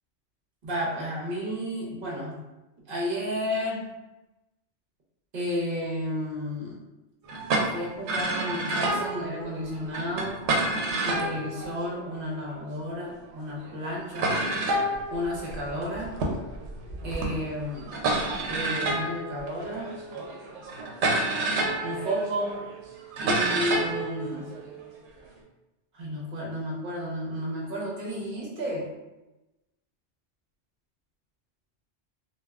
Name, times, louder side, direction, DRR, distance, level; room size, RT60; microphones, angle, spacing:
voice 1, 0.6-2.4 2.9-3.9 5.3-6.8 7.7-10.5 11.0-14.4 15.1-16.2 17.0-17.9 18.5-20.0 21.8-22.6 23.2-24.5 25.9-28.9, equal, 55° right, -3 dB, 0.9 m, -32 dB
sound 1, 7.3-12.6 13.3-13.4 13.6-13.7 14.2-25.3, right 2 dB, 80° right, 0.9 m, -29 dB
3.3 x 2.2 x 2.3 m, 1.0 s
omnidirectional pair, 1.2 m